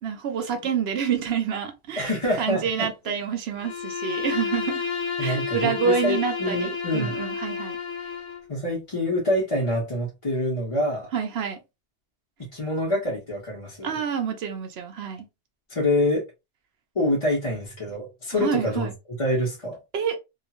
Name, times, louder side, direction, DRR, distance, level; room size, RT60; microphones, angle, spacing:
voice 1, 0.0-2.1 2.4-4.9 5.2-7.8 8.0-8.1 11.1-11.6 13.8-15.3 18.4-18.9 19.9-20.2, right 7 dB, 70° right, 0.9 m, -28 dB
voice 2, 2.0-2.9 5.2-7.1 8.5-11.1 12.5-14.0 15.7-16.2 16.9-18.9 19.2-19.8, left 1 dB, 30° left, 0.8 m, -26 dB
Bowed string instrument, 3.6-8.5, left 6 dB, 70° left, 1.0 m, -30 dB
2.9 x 2.4 x 2.3 m
omnidirectional pair, 1.2 m